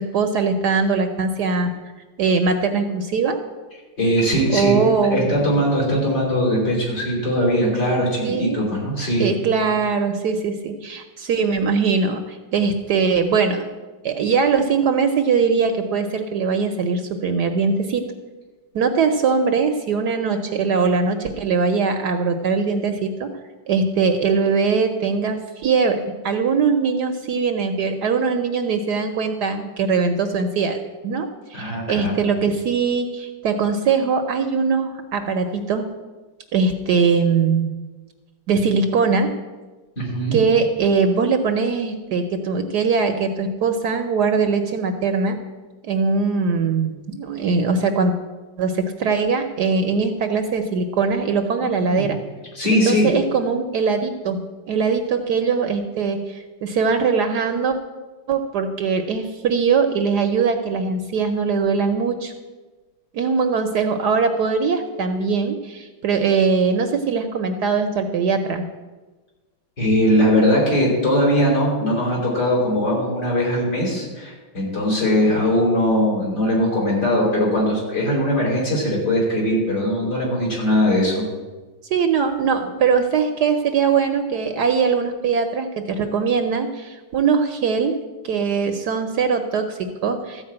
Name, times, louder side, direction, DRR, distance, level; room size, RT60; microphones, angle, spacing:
voice 1, 0.0-1.7 2.2-3.4 4.5-5.2 8.2-8.6 9.2-13.7 14.0-18.0 18.7-23.3 23.7-35.8 36.5-37.7 38.5-39.3 40.3-45.4 45.8-48.1 48.6-52.2 52.9-54.4 54.7-57.8 58.3-62.3 63.1-68.6 81.9-87.9 88.2-90.4, right 5 dB, 65° right, 6 dB, 1.2 m, -21 dB
voice 2, 4.0-4.8 5.1-9.3 31.5-32.1 40.0-40.4 51.8-52.0 52.5-53.1 69.8-81.2, equal, 55° left, -4 dB, 5.1 m, -20 dB
14.0 x 4.8 x 8.7 m, 1.2 s
omnidirectional pair, 2.1 m